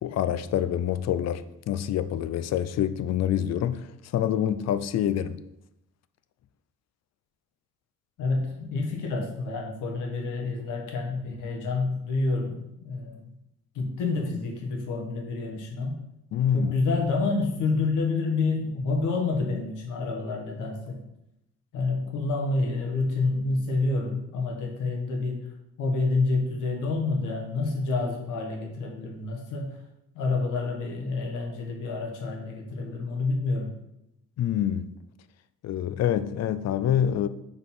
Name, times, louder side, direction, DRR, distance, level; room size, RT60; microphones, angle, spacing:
voice 1, 0.0-5.4 16.3-16.7 34.4-34.9 35.6-37.3, left 10 dB, 60° left, 0.5 m, -26 dB
voice 2, 8.2-13.3 13.7-16.0 16.5-21.0 21.7-25.4 25.8-29.8 30.1-33.8, left 3 dB, 90° left, 1.4 m, -28 dB
4.9 x 4.0 x 5.4 m
cardioid pair, 90°, 30 cm